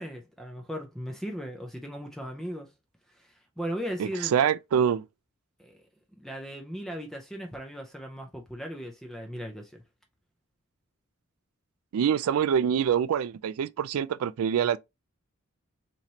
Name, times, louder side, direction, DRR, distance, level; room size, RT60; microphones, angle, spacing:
voice 1, 0.0-2.7 3.1-4.3 5.6-5.8 6.1-9.8, equal, ahead, 0.5 m, -37 dB
voice 2, 4.0-5.0 11.9-14.8, right 8 dB, 85° right, 0.3 m, -25 dB
4.0 x 3.1 x 2.8 m
head